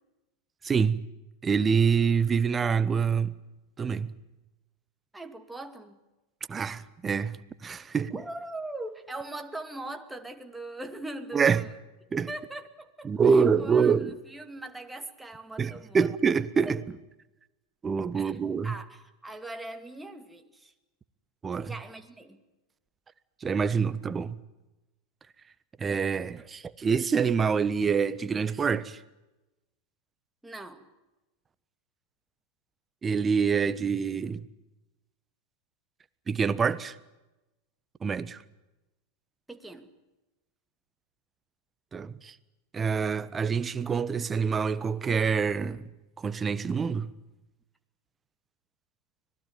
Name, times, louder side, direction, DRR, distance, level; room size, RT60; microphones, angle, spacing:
voice 1, 0.6-1.0 1.4-3.3 3.8-4.1 6.5-8.2 11.3-11.6 12.1-12.3 13.1-14.1 15.6-16.8 17.8-18.7 21.4-21.7 23.4-24.3 25.8-29.0 33.0-34.5 36.3-36.9 38.0-38.4 41.9-42.3 42.7-45.9 46.2-47.1, right 6 dB, 20° right, 1.3 m, -26 dB
voice 2, 5.1-6.0 8.1-11.7 12.3-16.1 18.1-18.4 18.6-20.7 21.6-22.4 30.4-30.9 39.5-39.9, right 2 dB, 5° right, 2.5 m, -40 dB
25.5 x 19.5 x 9.3 m
hypercardioid pair, 90°, 0 cm